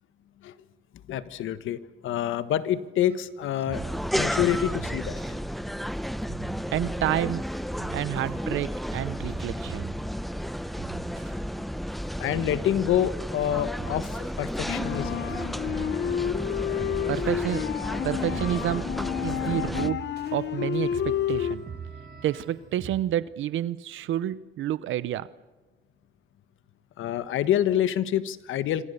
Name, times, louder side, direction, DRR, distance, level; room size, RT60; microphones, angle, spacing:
voice 1, 1.1-3.8 4.1-5.2 12.2-15.3 27.0-28.9, left 11 dB, 80° left, 13 dB, 1.5 m, -27 dB
sound 1, 3.1-23.0, right 7 dB, 55° right, 4.7 m, -44 dB
sound 2, 3.7-19.9, equal, ahead, 0.7 m, -32 dB
voice 2, 6.7-7.4 7.9-9.9 17.1-17.7 18.0-18.9 19.2-20.0 20.3-21.7 22.2-25.3, right 12 dB, 80° right, 17 dB, 0.9 m, -29 dB
sound 3, 8.9-9.8 10.1-13.0 13.4-21.6, left 10 dB, 65° left, 1.0 m, -31 dB
26.0 x 26.0 x 6.9 m, 1.2 s
cardioid pair, 90°, 20 cm